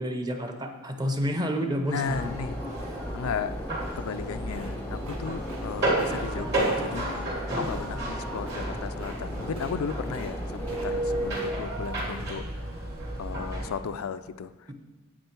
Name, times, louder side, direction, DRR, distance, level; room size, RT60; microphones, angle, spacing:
voice 1, 0.0-2.2 6.1-6.5, equal, 20° right, 5 dB, 0.8 m, -30 dB
voice 2, 1.9-2.6 3.1-3.6 4.0-7.1 7.5-12.4 13.2-14.7, left 6 dB, 75° left, 11 dB, 0.4 m, -35 dB
sound 1, 1.9-11.6, left 1 dB, 10° left, 0.4 m, -40 dB
sound 2, 2.1-13.7, right 1 dB, 55° right, 2.6 m, -32 dB
sound 3, 4.5-5.7 5.9-6.2 6.6-6.8 8.3-8.7 9.0-9.2 9.5-9.8 10.0-10.4 10.6-11.5 11.8-12.2, right 1 dB, 80° right, 1.5 m, -46 dB
8.8 x 7.8 x 4.5 m, 1.2 s
head